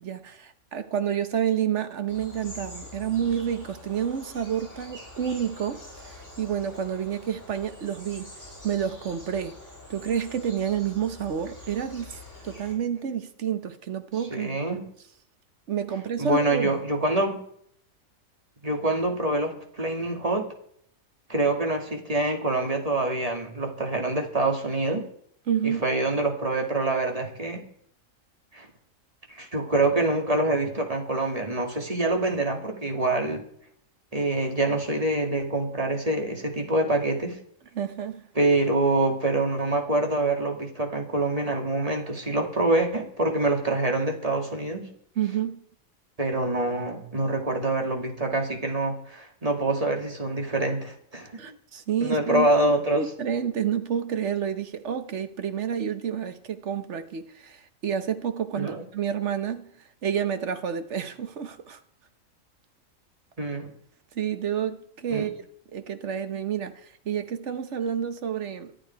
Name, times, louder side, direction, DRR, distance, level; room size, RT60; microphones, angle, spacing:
voice 1, 0.0-8.3 8.6-9.6 9.9-12.2 12.4-14.8 15.7-16.8 25.5-25.8 37.7-38.2 45.2-45.6 51.4-52.5 52.9-59.7 60.0-61.8 64.1-65.4 65.7-68.7, right 8 dB, 60° right, 1.3 m, -29 dB
sound 1, 2.1-12.7, left 2 dB, 10° left, 7.9 m, -45 dB
voice 2, 14.3-14.9 16.2-17.4 18.6-20.5 21.3-25.1 25.6-27.7 28.5-28.7 29.3-33.4 34.1-37.4 38.4-44.9 46.2-51.6 52.0-53.1 58.5-58.8 63.4-63.7 65.1-65.3, right 2 dB, 25° right, 2.4 m, -25 dB
23.5 x 8.9 x 4.6 m
omnidirectional pair, 1.4 m